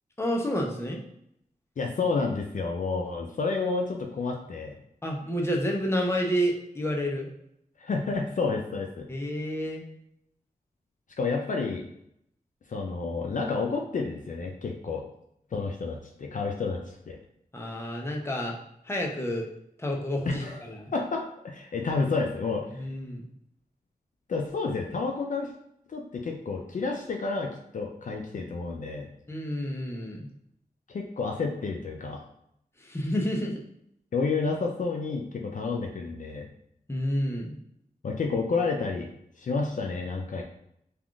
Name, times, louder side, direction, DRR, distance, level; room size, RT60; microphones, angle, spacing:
voice 1, 0.2-1.0 5.0-7.3 9.1-9.8 17.5-18.5 18.8-19.5 19.8-20.9 22.7-23.2 29.3-30.3 32.8-33.5 36.9-37.6, equal, 15° left, 0 dB, 0.6 m, -29 dB
voice 2, 1.8-4.7 7.8-9.0 11.2-11.8 12.7-15.0 15.5-17.2 20.3-20.6 20.9-22.8 24.3-25.5 25.9-29.1 30.9-32.2 34.1-36.5 38.0-39.1 39.4-40.4, left 4 dB, 55° left, 1 dB, 0.4 m, -30 dB
3.4 x 2.4 x 2.3 m, 0.76 s
cardioid pair, 60°, 16 cm